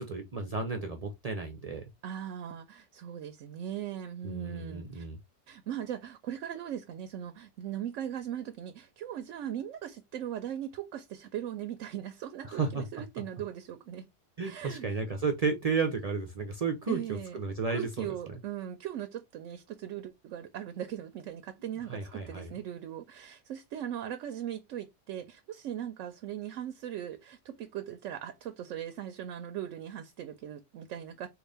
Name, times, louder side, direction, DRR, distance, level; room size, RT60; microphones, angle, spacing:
voice 1, 0.0-1.9 4.2-5.2 12.4-12.8 14.4-18.3 21.9-22.5, right 4 dB, 45° right, 0.5 m, -33 dB
voice 2, 2.0-5.1 5.5-14.1 14.4-15.0 16.9-17.4 17.7-31.3, right 10 dB, 90° right, 0.9 m, -39 dB
3.9 x 2.4 x 3.3 m
omnidirectional pair, 1.3 m